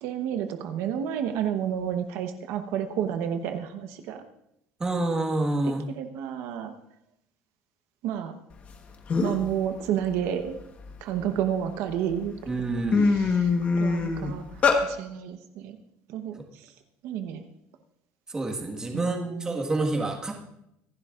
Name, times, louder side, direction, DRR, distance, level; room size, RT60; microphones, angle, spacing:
voice 1, 0.0-4.3 5.6-6.7 8.0-8.3 9.2-10.5 11.0-12.3 12.9-15.8 16.1-16.7 17.0-17.4 18.9-19.6, right 9 dB, 70° right, 7 dB, 1.0 m, -31 dB
voice 2, 4.8-5.8 12.5-13.1 18.3-20.3, right 2 dB, 15° right, 1 dB, 1.6 m, -28 dB
sound 1, 8.7-8.8 9.1-9.5 10.0-11.5 12.1-12.3 12.6-14.8, left 4 dB, 30° left, 1.2 m, -24 dB
25.0 x 11.5 x 2.5 m, 0.80 s
cardioid pair, 165°, 5 cm